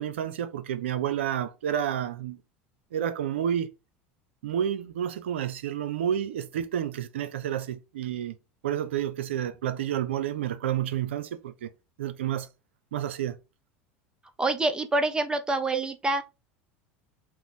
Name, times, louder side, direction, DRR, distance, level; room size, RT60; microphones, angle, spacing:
voice 1, 0.0-2.4 2.9-3.7 4.4-8.3 8.6-11.7 12.0-12.5 12.9-13.3 15.7-15.8, right 10 dB, 85° right, 0.4 m, -30 dB
voice 2, 14.4-16.2, right 2 dB, 15° right, 0.6 m, -26 dB
2.9 x 2.0 x 4.0 m
hypercardioid pair, 85°, 6 cm